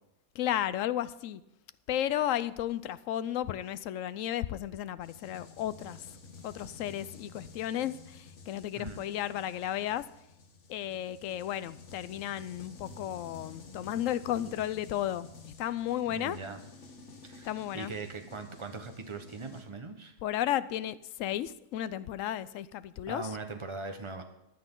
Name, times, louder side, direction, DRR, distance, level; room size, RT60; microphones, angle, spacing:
voice 1, 0.3-1.4 1.9-6.1 6.4-10.1 10.7-16.4 17.4-17.9 20.2-23.4, left 12 dB, 85° left, 16 dB, 1.0 m, -33 dB
sound 1, 5.0-19.6, left 3 dB, 65° left, 1.6 m, -51 dB
voice 2, 16.1-16.6 17.2-20.2 23.1-24.2, right 3 dB, 25° right, 6 dB, 1.2 m, -40 dB
15.0 x 10.5 x 3.8 m, 0.88 s
omnidirectional pair, 1.3 m